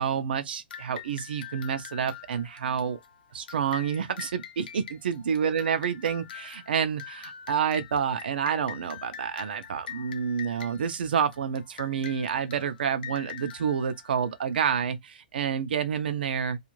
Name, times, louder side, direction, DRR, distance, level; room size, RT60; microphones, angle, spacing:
voice 1, 0.0-3.0 3.3-16.6, right 7 dB, 75° right, 0.5 m, -29 dB
sound 1, 0.7-14.8, left 9 dB, 70° left, 0.7 m, -45 dB
2.5 x 2.4 x 3.0 m
hypercardioid pair, 145°, 5 cm